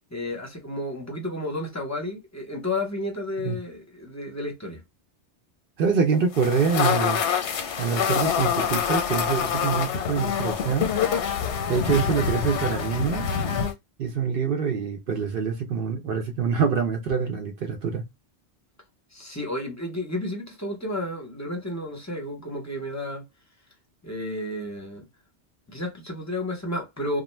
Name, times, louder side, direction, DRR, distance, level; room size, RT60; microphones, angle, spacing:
voice 1, 0.1-4.8 19.1-23.2 24.0-25.1 25.7-27.2, left 1 dB, 20° left, 0.6 m, -32 dB
voice 2, 5.8-7.2 7.8-10.9 11.7-13.3 14.0-18.0, right 6 dB, 60° right, 0.7 m, -25 dB
sound 1, 6.3-13.7, left 7 dB, 90° left, 0.9 m, -26 dB
2.4 x 2.1 x 3.1 m
omnidirectional pair, 1.2 m